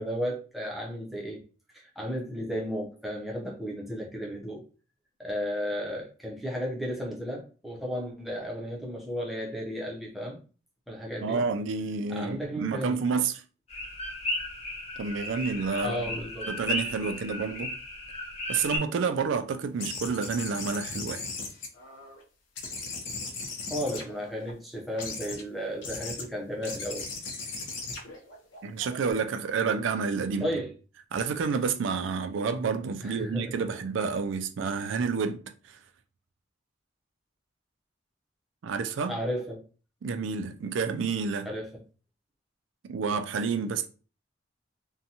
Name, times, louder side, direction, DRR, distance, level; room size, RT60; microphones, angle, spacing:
voice 1, 0.0-1.4 1.7-4.6 5.2-10.4 10.9-11.4 12.1-13.0 15.8-16.5 23.7-27.1 30.4-30.7 33.0-33.5 39.1-39.6 41.5-41.8, equal, ahead, 0.6 m, -34 dB
voice 2, 11.2-13.4 15.0-16.2 16.5-17.7 18.5-21.2 28.6-30.5 31.1-35.4 38.6-39.2 40.0-41.5 42.8-43.9, right 5 dB, 75° right, 0.3 m, -29 dB
sound 1, 13.7-18.8, left 1 dB, 35° left, 0.7 m, -35 dB
sound 2, 19.8-22.2 22.6-24.5 25.0-25.4 25.8-26.2 26.6-29.1, left 3 dB, 75° left, 0.7 m, -38 dB
2.6 x 2.2 x 2.7 m
head